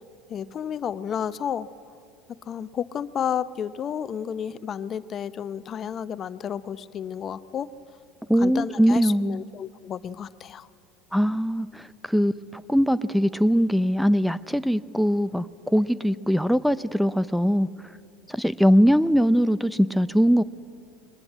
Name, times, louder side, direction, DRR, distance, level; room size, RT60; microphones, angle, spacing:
voice 1, 0.3-1.7 2.5-7.7 8.4-10.7, left 8 dB, 40° left, 15 dB, 0.8 m, -31 dB
voice 2, 8.3-9.4 11.1-17.7 18.3-20.4, equal, ahead, 16 dB, 0.6 m, -21 dB
22.0 x 20.5 x 8.6 m, 2.3 s
hypercardioid pair, 75°, 0 cm